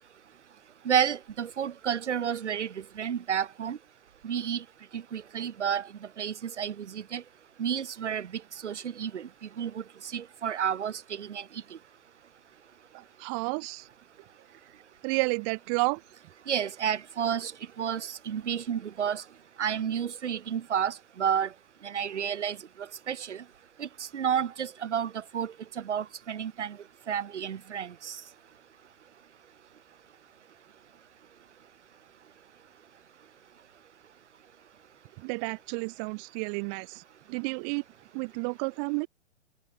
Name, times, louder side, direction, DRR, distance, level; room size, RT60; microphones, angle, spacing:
voice 1, 0.9-3.8 4.2-4.6 4.9-5.9 6.2-7.2 7.6-8.3 8.6-9.3 9.6-9.8 10.1-11.4 16.5-17.5 17.8-19.2 19.6-21.5 21.8-22.6 23.1-23.4 23.8-26.8 27.1-28.2, right 8 dB, 80° right, 1.7 m, -31 dB
voice 2, 12.9-13.9 15.0-16.0 35.2-37.0 37.3-37.8 38.1-39.1, right 40 dB or more, 25° right, 0.6 m, -31 dB
hypercardioid pair, 135°, 34 cm